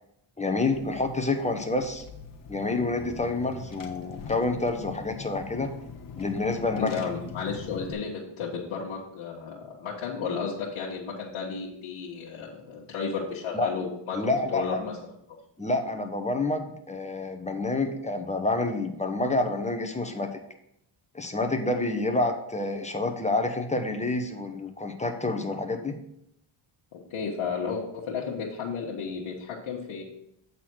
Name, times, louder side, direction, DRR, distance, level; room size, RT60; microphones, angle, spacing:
voice 1, 0.4-2.0 2.5-5.7 6.2-6.9 13.5-13.7 14.1-14.9 15.6-20.4 21.1-25.9, left 2 dB, 15° left, 5 dB, 1.1 m, -28 dB
Car / Engine, 0.7-7.9, left 5 dB, 40° left, 1.2 m, -42 dB
voice 2, 6.7-14.2 14.5-14.9 15.3-15.4 26.9-30.0, left 5 dB, 75° left, -5 dB, 1.6 m, -33 dB
8.3 x 4.2 x 6.1 m, 0.76 s
cardioid pair, 95°, 49 cm